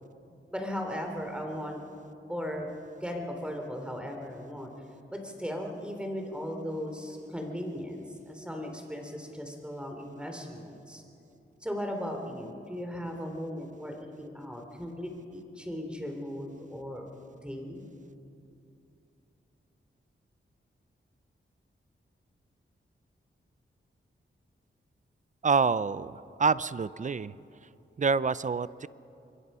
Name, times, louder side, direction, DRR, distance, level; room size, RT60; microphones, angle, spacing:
voice 1, 0.5-1.8 2.3-2.7 3.0-4.7 5.1-11.0 11.6-17.1 17.4-17.8, equal, 5° right, 3 dB, 3.4 m, -37 dB
voice 2, 25.4-27.3 28.0-28.9, right 5 dB, 35° right, 18 dB, 0.5 m, -27 dB
26.5 x 21.5 x 5.6 m, 2.7 s
wide cardioid pair, 95°, 21 cm